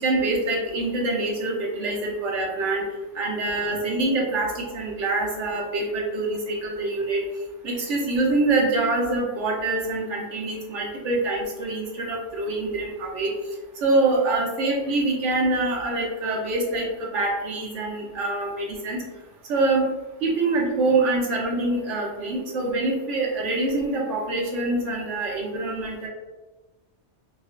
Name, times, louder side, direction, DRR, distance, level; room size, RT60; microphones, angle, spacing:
voice 1, 0.0-2.8 3.1-7.2 7.6-13.3 13.8-19.0 19.5-19.8 20.2-26.1, right 2 dB, 80° right, -3 dB, 1.1 m, -25 dB
4.2 x 2.0 x 2.4 m, 1.1 s
omnidirectional pair, 1.2 m